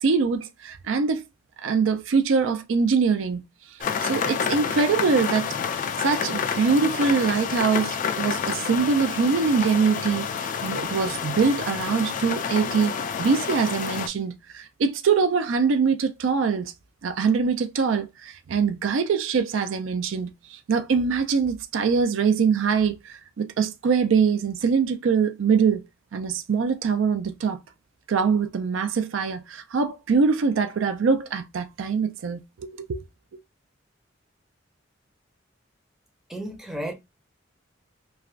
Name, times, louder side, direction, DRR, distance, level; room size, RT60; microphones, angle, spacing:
voice 1, 0.0-1.2 1.6-3.4 4.0-16.7 17.0-25.8 26.1-27.6 28.1-33.0, right 5 dB, 80° right, 0.4 m, -23 dB
sound 1, 3.8-14.1, left 7 dB, 40° left, 0.3 m, -29 dB
voice 2, 36.3-36.9, right 1 dB, ahead, 0.6 m, -32 dB
3.2 x 2.4 x 2.4 m
head